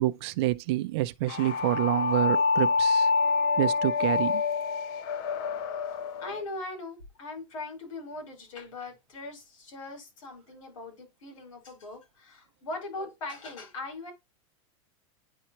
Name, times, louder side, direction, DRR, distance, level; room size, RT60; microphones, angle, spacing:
voice 1, 0.0-3.1 3.6-4.4, right 17 dB, 50° right, 0.5 m, -27 dB
sound 1, 1.3-6.4, left 4 dB, 45° left, 0.6 m, -27 dB
voice 2, 6.2-14.1, left 2 dB, 75° left, 5.0 m, -40 dB
9.9 x 4.3 x 2.9 m
supercardioid pair, 155°, 17 cm